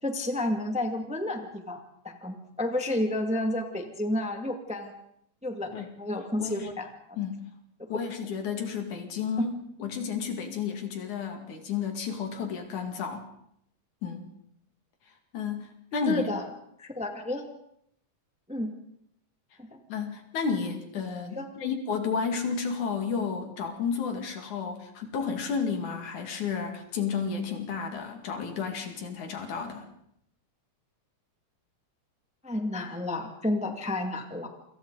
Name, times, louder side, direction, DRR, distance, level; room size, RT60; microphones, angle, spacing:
voice 1, 0.0-1.8 2.0-4.9 5.4-5.7 6.0-7.2 9.4-9.5 16.0-16.4 16.8-17.5 18.5-18.7 19.7-19.8 21.3-21.5 32.4-34.5, left 1 dB, 5° right, 4 dB, 1.6 m, -31 dB
voice 2, 6.4-6.7 7.2-7.5 7.9-9.5 9.8-13.3 14.0-14.3 15.3-16.3 19.9-29.9, left 6 dB, 75° left, 5 dB, 3.6 m, -32 dB
28.5 x 25.5 x 4.0 m, 0.73 s
omnidirectional pair, 3.5 m